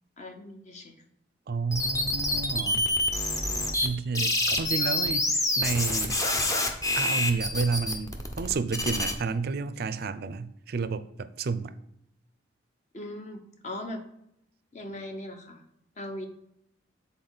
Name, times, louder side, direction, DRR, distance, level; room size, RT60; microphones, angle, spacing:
voice 1, 0.2-1.0 12.9-14.0 14.7-15.6 16.0-16.3, left 1 dB, 40° left, 0.9 m, -39 dB
voice 2, 1.5-2.9 3.8-6.2 7.0-11.7, right 4 dB, 55° right, 0.4 m, -31 dB
sound 1, 1.7-3.9 4.1-9.1, left 1 dB, 20° left, 0.7 m, -27 dB
8.6 x 4.0 x 4.0 m
head